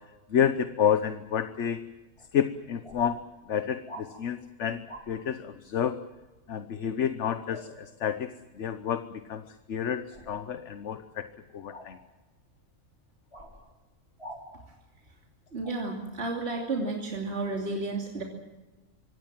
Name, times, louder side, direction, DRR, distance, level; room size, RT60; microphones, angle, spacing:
voice 1, 0.3-1.8 2.3-3.2 3.5-6.0 6.5-11.3 11.5-12.0, left 8 dB, 60° left, 10 dB, 1.2 m, -29 dB
sound 1, 2.2-2.3 2.8-3.0 3.9-4.1 4.9-5.1 7.5-7.7 10.1-10.4 11.7-11.9 13.3-13.5 14.2-14.4 15.6-15.8, equal, 20° left, 5.4 m, -44 dB
voice 2, 15.5-18.2, right 3 dB, 50° right, 0 dB, 3.2 m, -32 dB
25.0 x 19.0 x 7.5 m, 1.2 s
omnidirectional pair, 1.4 m